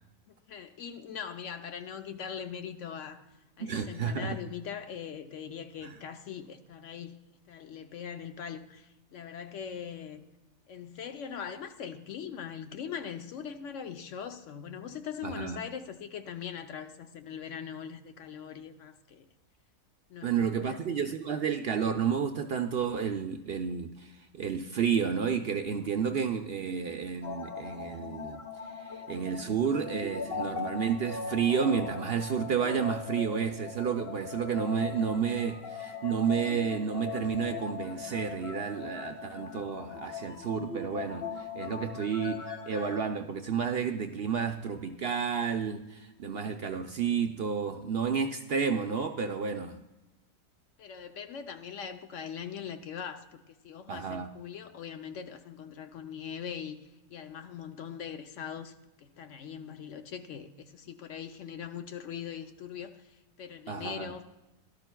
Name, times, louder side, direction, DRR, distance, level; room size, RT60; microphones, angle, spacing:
voice 1, 0.3-3.3 3.6-7.2 7.5-10.2 10.7-19.3 20.1-20.8 50.8-56.8 57.1-63.0 63.4-64.2, left 8 dB, 65° left, 1.0 m, -41 dB
voice 2, 3.6-4.4 5.8-5.9 15.2-15.6 20.2-28.4 28.7-49.8 53.9-54.3 63.7-64.1, right 7 dB, 60° right, 0.7 m, -31 dB
sound 1, 27.2-43.0, left 5 dB, 45° left, 1.7 m, -40 dB
17.0 x 12.5 x 2.2 m
omnidirectional pair, 1.5 m